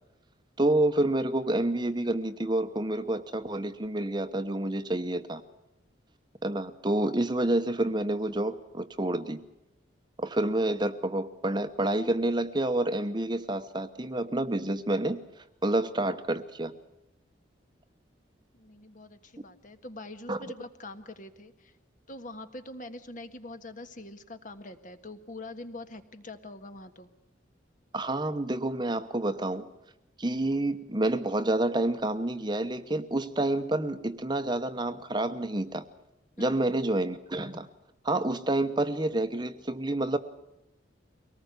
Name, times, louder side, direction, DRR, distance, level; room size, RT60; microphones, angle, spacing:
voice 1, 0.6-5.4 6.4-9.4 10.2-16.7 20.3-20.4 27.9-29.7 30.2-35.8 36.4-37.7 38.0-40.2, right 1 dB, 25° right, 10 dB, 1.0 m, -28 dB
voice 2, 18.5-21.7 22.1-27.1 36.4-36.6, left 2 dB, 45° left, 9 dB, 1.6 m, -44 dB
23.5 x 19.0 x 8.2 m, 0.93 s
head